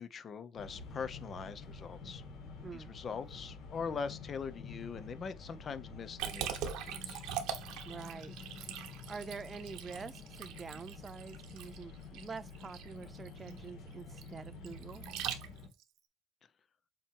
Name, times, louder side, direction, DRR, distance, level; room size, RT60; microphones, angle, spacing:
voice 1, 0.0-2.2 2.7-7.4, left 6 dB, 35° left, 0.7 m, -42 dB
sound 1, 0.6-15.7, left 4 dB, 65° left, 2.6 m, -49 dB
voice 2, 2.6-2.9 7.9-8.5 9.1-15.0, right 5 dB, 25° right, 0.4 m, -46 dB
Liquid, 6.2-15.8, right 10 dB, 80° right, 1.1 m, -42 dB
7.7 x 3.0 x 4.6 m
cardioid pair, 140°, 0 cm